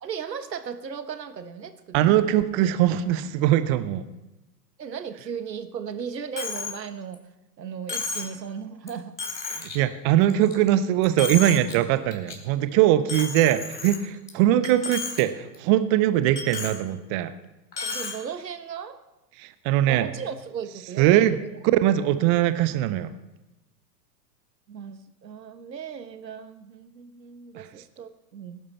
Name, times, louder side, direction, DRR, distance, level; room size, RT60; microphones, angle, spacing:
voice 1, 0.0-2.2 4.8-7.2 7.6-9.1 17.8-19.0 19.9-21.3 24.7-28.6, right 7 dB, 80° right, 10 dB, 1.4 m, -36 dB
voice 2, 1.9-4.0 9.5-17.3 19.4-20.1 21.0-21.4 21.8-23.1 27.5-27.7, right 12 dB, 20° right, 12 dB, 0.4 m, -21 dB
Coin (dropping), 6.4-6.8 7.1-7.2 7.9-8.4 8.9-9.0 9.2-9.8 10.2-10.7 11.0-11.7 12.1-12.3 13.1-14.3 14.6-15.2 15.5-15.6 16.4-16.8 17.7-18.2, left 4 dB, 80° left, 3.5 m, -32 dB
20.0 x 11.5 x 4.2 m, 0.98 s
figure-of-eight pair, 100°, 50 cm